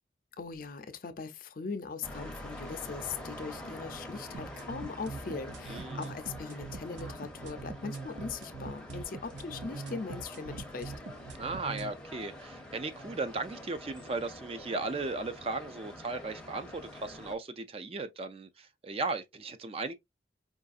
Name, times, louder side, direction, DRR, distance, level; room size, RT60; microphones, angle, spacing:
voice 1, 0.4-10.9, left 5 dB, 45° left, 0.5 m, -40 dB
sound 1, 2.0-17.3, left 1 dB, 5° left, 0.6 m, -46 dB
sound 2, 4.3-11.9, right 4 dB, 70° right, 0.6 m, -42 dB
voice 2, 5.7-6.1 11.4-20.0, right 3 dB, 30° right, 0.4 m, -36 dB
4.7 x 2.5 x 2.4 m
head